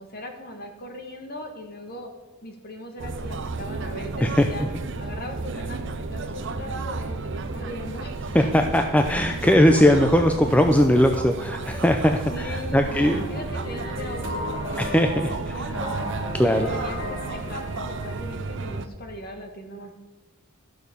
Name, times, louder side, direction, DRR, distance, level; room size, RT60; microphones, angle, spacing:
voice 1, 0.0-2.1 2.4-4.7 5.0-8.2 12.3-16.0 16.7-19.9, left 1 dB, 45° left, 4 dB, 1.5 m, -39 dB
sound 1, 3.0-18.9, right 3 dB, 60° right, 0.7 m, -32 dB
voice 2, 4.2-4.7 8.3-13.2 14.8-15.3 16.4-16.7, left 1 dB, 5° left, 5 dB, 0.5 m, -19 dB
sound 2, 12.9-18.2, left 1 dB, 90° left, 4.1 m, -35 dB
12.0 x 6.3 x 6.8 m, 1.2 s
head